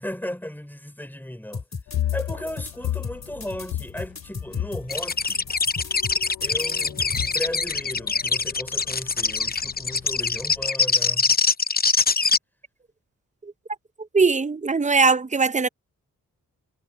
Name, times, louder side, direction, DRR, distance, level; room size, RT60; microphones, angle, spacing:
voice 1, 0.0-1.6 1.9-5.5 6.4-11.3, left 1 dB, 5° left, 4.6 m, -36 dB
sound 1, 1.5-7.4, left 4 dB, 50° left, 3.3 m, -36 dB
sound 2, 1.9-10.7, left 12 dB, 80° left, 0.7 m, -35 dB
sound 3, 4.9-12.4, left 4 dB, 25° left, 0.7 m, -23 dB
voice 2, 14.1-15.7, right 4 dB, 20° right, 0.6 m, -20 dB
cardioid pair, 55°, 34 cm